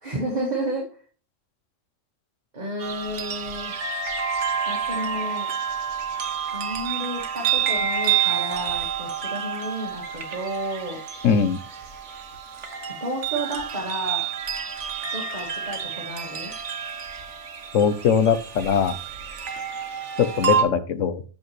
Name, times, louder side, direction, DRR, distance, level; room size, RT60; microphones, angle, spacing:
voice 1, 0.0-0.8 2.5-3.7 4.6-5.5 6.5-11.0 13.0-14.3 15.1-16.5, right 1 dB, 35° right, -1 dB, 1.7 m, -31 dB
sound 1, 2.8-20.6, right 7 dB, 65° right, 1.3 m, -29 dB
voice 2, 11.2-11.6 17.7-19.0 20.2-21.2, left 7 dB, 75° left, 11 dB, 1.2 m, -21 dB
8.3 x 6.8 x 3.2 m, 0.39 s
omnidirectional pair, 1.3 m